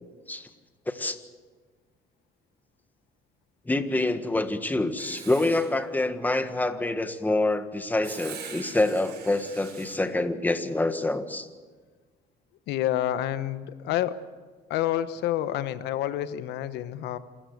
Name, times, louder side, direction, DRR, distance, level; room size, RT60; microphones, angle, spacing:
voice 1, 0.9-1.2 3.7-11.5, left 2 dB, 10° left, 9 dB, 1.6 m, -26 dB
Writing, 5.0-5.7 8.0-10.0, right 7 dB, 75° right, 6.5 m, -43 dB
voice 2, 12.7-14.2 14.7-17.2, left 12 dB, 85° left, 12 dB, 1.2 m, -28 dB
27.5 x 14.0 x 8.0 m, 1.4 s
cardioid pair, 110°, 17 cm